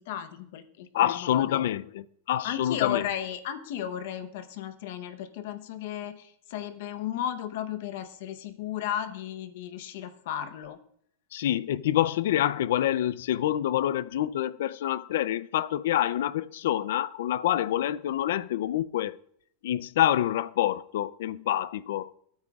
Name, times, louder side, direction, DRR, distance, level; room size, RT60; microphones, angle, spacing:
voice 1, 0.0-1.6 2.4-10.8, left 10 dB, 60° left, 0.8 m, -34 dB
voice 2, 0.9-3.0 11.3-19.2 19.6-22.1, left 12 dB, 75° left, 0.4 m, -27 dB
18.5 x 8.8 x 2.3 m
supercardioid pair, 170°, 0 cm